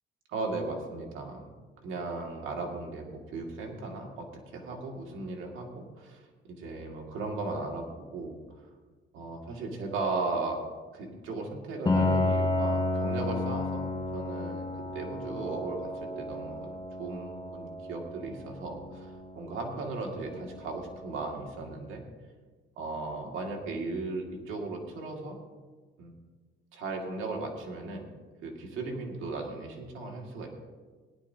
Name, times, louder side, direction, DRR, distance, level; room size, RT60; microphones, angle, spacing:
voice 1, 0.3-1.4 1.8-8.4 9.1-10.6 10.9-16.7 17.0-22.0 22.8-25.4 26.0-26.1 26.7-28.1 28.4-30.5, right 3 dB, 85° right, 1 dB, 2.1 m, -36 dB
Piano, 11.9-21.4, left 2 dB, 20° left, 1.6 m, -32 dB
18.0 x 11.0 x 2.8 m, 1.4 s
cardioid pair, 90°, 20 cm